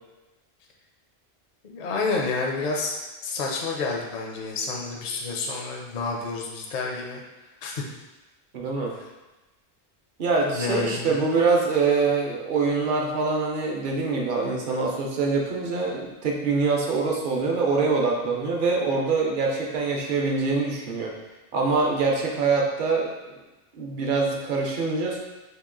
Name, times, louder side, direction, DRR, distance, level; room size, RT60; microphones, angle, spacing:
voice 1, 1.6-3.0 3.2-7.2 7.6-7.8 10.5-11.2, left 4 dB, 50° left, -1 dB, 0.6 m, -29 dB
voice 2, 8.5-8.9 10.2-21.1 21.5-23.1 23.7-25.2, right 4 dB, 55° right, -1 dB, 0.7 m, -24 dB
2.9 x 2.8 x 3.7 m, 1.1 s
omnidirectional pair, 1.1 m